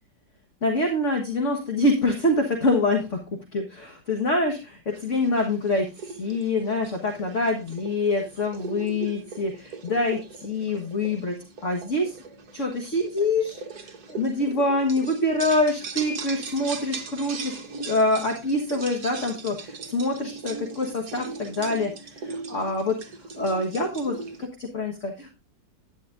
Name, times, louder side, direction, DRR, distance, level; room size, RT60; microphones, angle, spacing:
voice 1, 0.6-3.2 3.5-12.2 12.5-17.6 17.9-23.0 23.4-25.4, left 2 dB, 45° left, 1 dB, 1.8 m, -25 dB
sound 1, 4.9-24.5, right 4 dB, 55° right, 1.7 m, -39 dB
11.5 x 10.0 x 2.6 m, 0.27 s
omnidirectional pair, 2.0 m